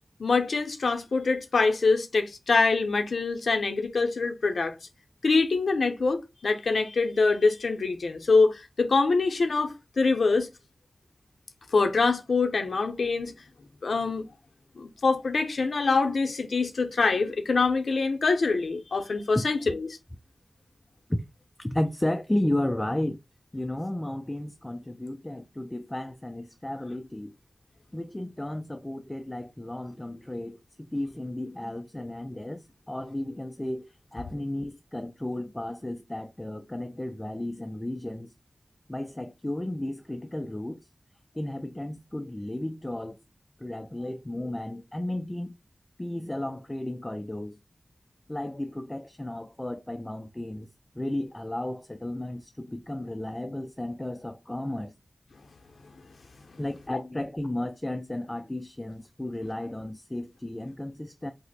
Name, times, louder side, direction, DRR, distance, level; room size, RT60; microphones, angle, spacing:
voice 1, 0.2-4.8 5.2-10.5 11.7-13.3 13.8-14.2 14.8-19.9, left 4 dB, 85° left, 0.6 m, -24 dB
voice 2, 21.6-23.2 23.5-27.3 27.9-38.3 38.9-40.8 41.3-43.2 43.6-45.5 46.0-47.6 48.3-50.7 51.0-54.9 56.6-61.3, left 1 dB, 15° left, 0.3 m, -33 dB
2.9 x 2.0 x 4.0 m
wide cardioid pair, 65°, 0 cm